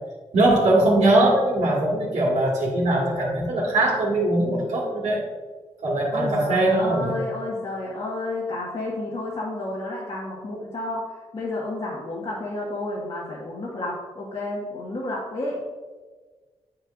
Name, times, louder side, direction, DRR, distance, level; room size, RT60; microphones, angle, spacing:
voice 1, 0.3-5.2 5.8-7.1, right 1 dB, 75° right, -2 dB, 1.9 m, -21 dB
voice 2, 6.1-15.6, left 2 dB, 50° left, -6 dB, 1.6 m, -31 dB
8.1 x 6.5 x 2.5 m, 1.4 s
supercardioid pair, 55°, 12 cm